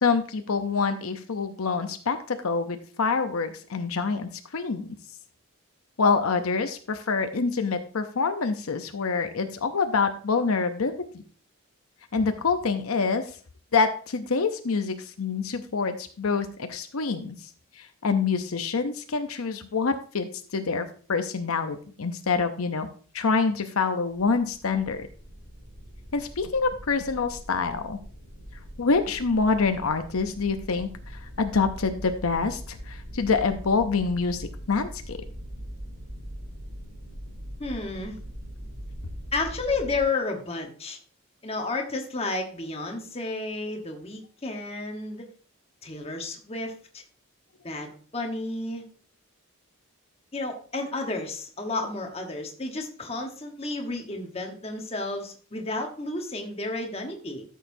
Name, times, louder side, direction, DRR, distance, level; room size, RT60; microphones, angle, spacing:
voice 1, 0.0-4.9 6.0-11.2 12.1-13.2 13.7-17.4 17.8-22.9 23.1-25.1 26.1-28.0 28.8-35.2, left 4 dB, 75° left, 8 dB, 0.7 m, -26 dB
sound 1, 24.1-40.0, equal, 90° right, 3.5 m, -41 dB
voice 2, 37.6-38.2 39.3-41.0 41.4-45.3 45.8-47.0 47.6-48.8 50.3-57.4, left 3 dB, 25° left, 3 dB, 1.2 m, -32 dB
13.0 x 6.5 x 2.7 m, 0.42 s
head